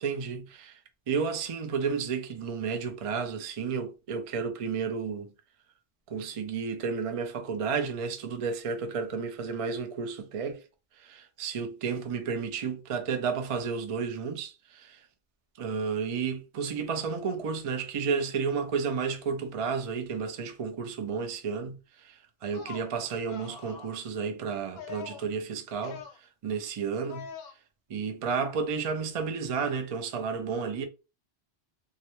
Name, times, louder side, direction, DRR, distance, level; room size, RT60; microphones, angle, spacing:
voice 1, 0.0-0.8 1.1-5.3 6.1-10.6 11.0-15.1 15.6-27.3 27.9-30.8, right 5 dB, 60° right, 0.3 m, -32 dB
sound 1, 22.4-22.9 23.3-24.0 24.8-25.3 25.7-26.2 27.1-27.5, left 6 dB, 70° left, 0.8 m, -43 dB
2.4 x 2.1 x 2.9 m
omnidirectional pair, 1.2 m